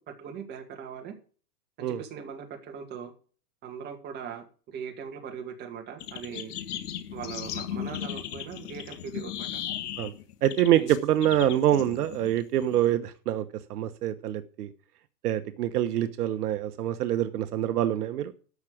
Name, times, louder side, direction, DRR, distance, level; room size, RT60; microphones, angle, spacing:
voice 1, 0.1-1.2 1.8-3.1 3.6-6.5 7.1-9.6 10.7-10.9, right 7 dB, 20° right, 3 dB, 2.1 m, -40 dB
sound 1, 6.0-12.9, left 11 dB, 65° left, 1.9 m, -37 dB
voice 2, 10.4-14.7 15.2-18.3, right 11 dB, 65° right, 10 dB, 1.2 m, -25 dB
13.0 x 6.0 x 8.6 m, 0.40 s
supercardioid pair, 160°, 49 cm